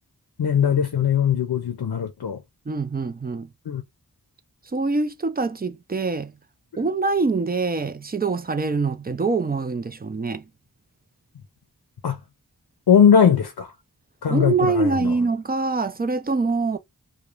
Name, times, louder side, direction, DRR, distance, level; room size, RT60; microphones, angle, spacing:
voice 1, 0.4-2.4 3.7-3.8 12.0-12.2 12.9-13.7 14.2-15.1, left 8 dB, 85° left, 0.5 m, -19 dB
voice 2, 2.7-3.5 4.7-6.3 6.8-10.4 14.3-16.8, right 3 dB, 25° right, 0.4 m, -24 dB
2.4 x 2.2 x 3.0 m
wide cardioid pair, 45°, 37 cm